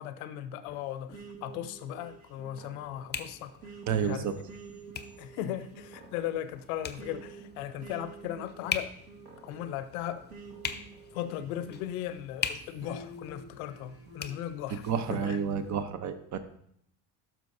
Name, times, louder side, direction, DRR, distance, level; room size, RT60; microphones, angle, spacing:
voice 1, 0.0-3.5 4.0-4.3 5.2-8.9 9.4-10.3 11.1-15.4, left 11 dB, 90° left, 12 dB, 0.7 m, -37 dB
sound 1, 0.7-15.8, left 7 dB, 25° left, 0.6 m, -43 dB
sound 2, 1.1-12.2 12.8-14.3, right 3 dB, 60° right, 1.9 m, -49 dB
voice 2, 3.9-4.3 14.7-16.4, right 7 dB, 45° right, 10 dB, 0.8 m, -30 dB
12.0 x 6.2 x 2.6 m, 0.70 s
supercardioid pair, 90°, 41 cm